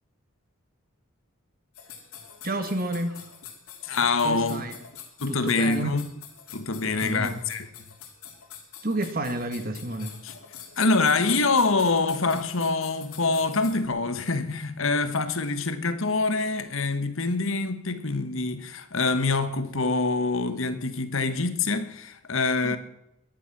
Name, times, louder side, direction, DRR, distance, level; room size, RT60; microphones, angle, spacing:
sound 1, 1.7-13.9, left 8 dB, 90° left, 3.1 m, -46 dB
voice 1, 2.4-3.1 4.2-4.7 5.3-6.0 6.8-7.4 8.8-10.1 22.6-22.8, right 2 dB, 40° right, 1.9 m, -30 dB
voice 2, 3.8-4.6 5.2-6.0 6.5-7.7 10.2-10.3 10.8-22.8, left 3 dB, 65° left, 1.3 m, -25 dB
22.0 x 10.5 x 6.0 m
head